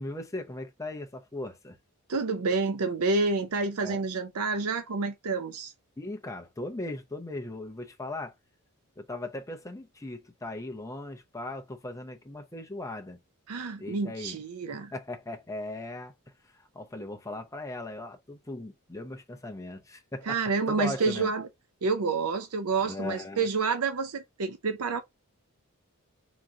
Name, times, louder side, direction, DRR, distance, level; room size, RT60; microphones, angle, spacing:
voice 1, 0.0-1.8 3.8-4.0 6.0-8.3 9.0-13.2 13.8-14.4 14.9-16.1 16.5-21.3 22.8-23.5, left 2 dB, 15° left, 0.7 m, -38 dB
voice 2, 2.1-5.7 13.5-14.9 20.3-21.4 21.8-25.0, right 4 dB, 80° right, 0.6 m, -28 dB
3.7 x 3.0 x 3.6 m
head